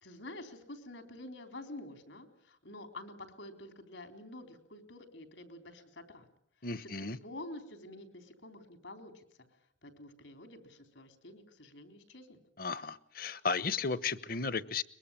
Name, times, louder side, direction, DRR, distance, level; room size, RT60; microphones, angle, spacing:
voice 1, 0.0-6.3 6.8-9.2 9.8-12.4, left 1 dB, 85° left, 7 dB, 3.9 m, -48 dB
voice 2, 6.6-7.2 12.6-14.8, left 4 dB, 50° left, 16 dB, 1.0 m, -34 dB
23.5 x 22.0 x 8.9 m, 0.67 s
head